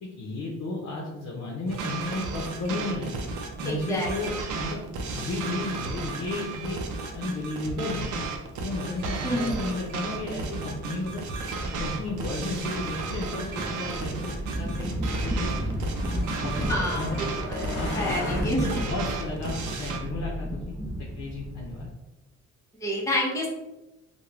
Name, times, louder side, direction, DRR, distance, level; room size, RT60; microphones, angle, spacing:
voice 1, 0.0-3.1 3.6-4.8 5.1-6.8 7.1-8.0 8.6-11.2 11.8-15.7 16.4-17.2 17.7-20.8 21.1-21.9, left 2 dB, 60° left, -2 dB, 0.6 m, -33 dB
sound 1, 1.7-20.0, right 3 dB, 75° right, 0.5 m, -34 dB
sound 2, 3.4-21.9, equal, 10° right, 0.4 m, -35 dB
voice 2, 3.6-4.1 9.2-9.6 16.7-18.8 22.8-23.5, left 1 dB, 10° left, -4 dB, 0.7 m, -29 dB
Truck, 14.4-18.4, left 1 dB, 40° left, 1.1 m, -38 dB
2.3 x 2.2 x 3.1 m, 0.99 s
cardioid pair, 90°, 30 cm